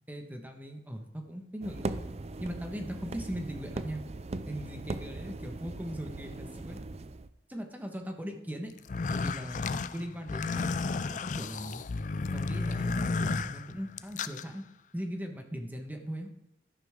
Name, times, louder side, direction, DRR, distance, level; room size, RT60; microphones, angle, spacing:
voice 1, 0.1-2.0 2.4-4.0 4.5-6.8 7.5-8.7 9.1-11.8 12.3-14.6 14.9-16.3, equal, 10° right, 4 dB, 1.4 m, -39 dB
sound 1, 1.6-7.3, right 2 dB, 35° right, 0.5 m, -39 dB
sound 2, 8.8-14.4, left 4 dB, 45° left, 0.4 m, -33 dB
13.0 x 11.0 x 3.7 m, 0.83 s
head